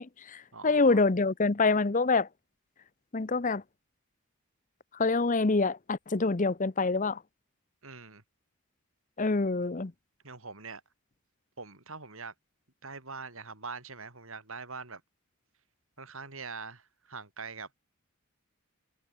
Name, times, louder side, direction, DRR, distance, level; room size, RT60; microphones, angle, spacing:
voice 1, 0.0-2.3 3.1-3.6 5.0-7.2 9.2-9.9, left 3 dB, 35° left, 0.7 m, -26 dB
voice 2, 0.5-1.0 7.8-8.2 10.2-10.8 11.6-12.3 12.8-15.0 16.0-17.7, right 4 dB, 65° right, 4.6 m, -43 dB
head